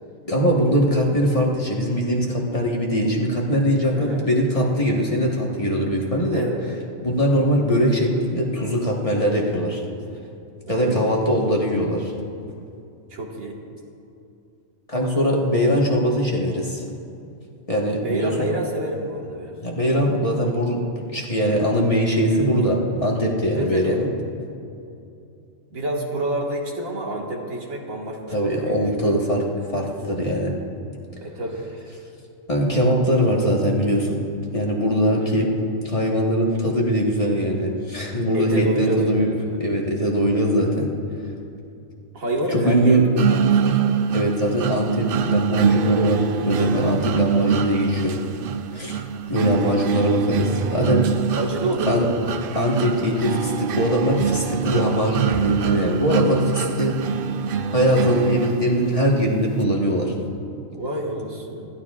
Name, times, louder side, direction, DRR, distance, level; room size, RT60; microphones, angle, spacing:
voice 1, 0.2-6.4 7.0-9.8 10.7-12.1 14.9-16.8 17.7-18.5 19.6-20.8 21.1-24.1 28.3-29.4 29.7-30.6 32.5-34.2 34.5-35.5 35.8-40.9 42.5-43.0 44.1-48.2 48.7-49.0 49.3-51.0 51.9-52.1 52.5-57.0 57.7-60.1, equal, 25° left, -3 dB, 1.4 m, -21 dB
voice 2, 3.9-4.3 6.3-6.6 10.7-11.5 13.1-13.6 18.0-19.6 23.6-24.0 25.7-29.1 31.2-31.6 35.2-35.6 38.3-39.6 42.1-43.8 47.5-47.7 49.6-49.8 51.4-52.8 60.7-61.7, right 1 dB, 85° right, -2 dB, 2.2 m, -28 dB
sound 1, 43.2-59.1, right 7 dB, 65° right, 0.5 m, -24 dB
26.0 x 12.0 x 2.4 m, 2.7 s
omnidirectional pair, 1.4 m